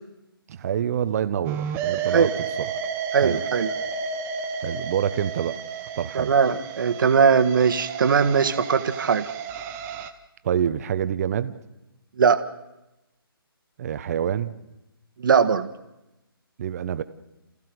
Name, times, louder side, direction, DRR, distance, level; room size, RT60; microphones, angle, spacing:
voice 1, 0.5-2.3 2.6-2.7 3.2-3.4 4.6-5.6 6.0-6.3 10.4-11.5 13.8-14.5 16.6-17.0, right 9 dB, 40° right, 12 dB, 1.1 m, -26 dB
sound 1, 1.4-10.1, right 6 dB, 15° right, 0.9 m, -32 dB
voice 2, 3.1-3.7 6.2-9.3 12.2-12.4 15.2-15.7, right 6 dB, 55° right, 7 dB, 1.6 m, -20 dB
29.0 x 15.5 x 7.9 m, 0.95 s
figure-of-eight pair, 150°, 13 cm